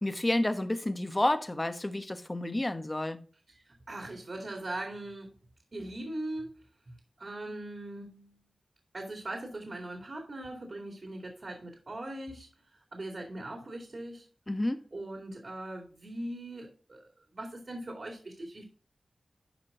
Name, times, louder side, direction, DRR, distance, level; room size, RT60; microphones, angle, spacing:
voice 1, 0.0-3.2 14.5-14.8, left 1 dB, 20° left, 1.1 m, -30 dB
voice 2, 3.5-5.4 5.7-8.4 8.9-14.3 14.9-18.6, right 1 dB, 55° right, 2.4 m, -41 dB
11.5 x 5.3 x 3.8 m
wide cardioid pair, 105°, 0 cm